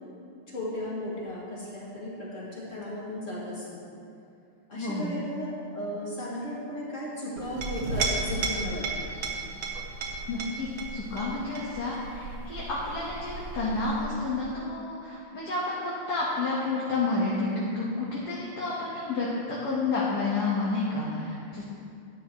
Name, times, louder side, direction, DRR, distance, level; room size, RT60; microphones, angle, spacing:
voice 1, 0.5-3.8 4.7-9.1, left 1 dB, 35° left, -7 dB, 2.5 m, -35 dB
voice 2, 4.7-5.2 10.3-21.6, left 3 dB, 50° left, -6 dB, 1.7 m, -30 dB
Chink clink, 7.4-14.5, right 3 dB, 80° right, 2.0 m, -34 dB
12.5 x 9.2 x 3.0 m, 2.5 s
omnidirectional pair, 2.4 m